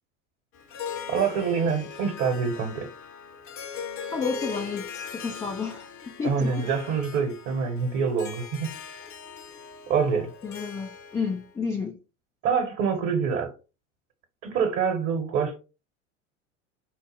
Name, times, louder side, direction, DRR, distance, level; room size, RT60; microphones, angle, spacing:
Harp, 0.5-11.5, left 7 dB, 35° left, 0.8 m, -40 dB
voice 1, 1.1-2.9 6.2-9.0 9.9-10.3 12.4-13.5 14.4-15.6, right 6 dB, 40° right, 1.1 m, -26 dB
voice 2, 4.1-6.7 10.4-12.0, left 5 dB, 10° left, 0.3 m, -31 dB
4.7 x 2.0 x 3.4 m
figure-of-eight pair, 80°, 38 cm